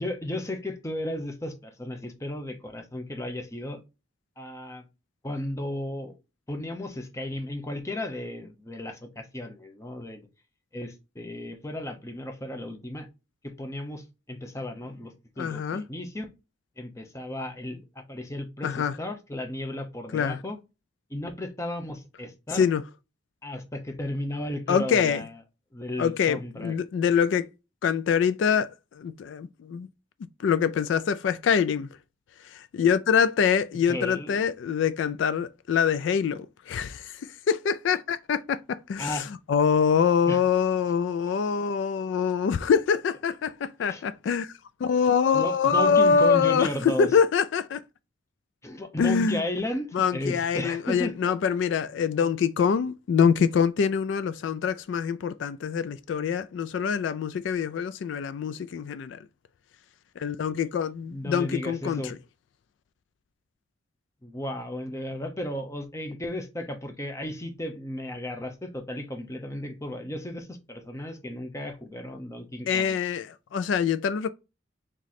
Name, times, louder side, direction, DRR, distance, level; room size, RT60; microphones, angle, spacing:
voice 1, 0.0-3.8 4.4-4.8 5.2-6.2 6.5-10.3 10.7-13.1 13.4-16.3 16.8-20.6 21.1-22.6 23.4-25.4 25.7-26.8 33.9-34.4 39.0-39.3 40.3-40.4 43.9-44.0 45.3-47.2 48.6-51.3 61.1-62.1 64.2-73.0, left 1 dB, 15° left, 0.7 m, -34 dB
voice 2, 15.4-15.8 18.6-18.9 20.1-20.4 22.5-22.8 24.7-25.2 26.0-27.5 27.8-28.7 29.0-29.9 30.4-31.9 32.4-37.2 37.5-39.2 39.5-44.5 44.8-47.8 49.0-49.4 49.9-59.2 60.2-62.1 72.7-74.3, left 6 dB, 75° left, 0.3 m, -24 dB
3.7 x 3.0 x 4.1 m
head